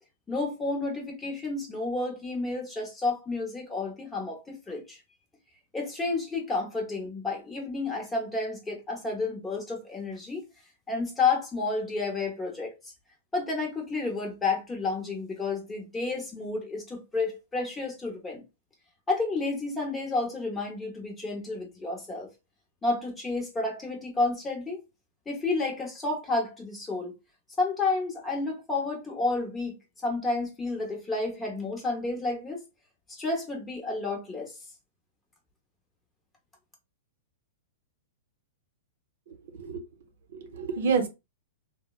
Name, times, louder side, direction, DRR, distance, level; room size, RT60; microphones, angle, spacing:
voice 1, 0.3-5.0 5.7-10.5 10.9-12.9 13.3-18.4 19.1-22.3 22.8-24.8 25.3-27.1 27.6-29.8 30.0-32.6 33.1-34.6, left 3 dB, 10° left, 0.8 m, -30 dB
voice 2, 39.3-39.8 40.4-41.1, right 5 dB, 75° right, 0.7 m, -28 dB
3.0 x 2.0 x 2.3 m
hypercardioid pair, 145°, 0 cm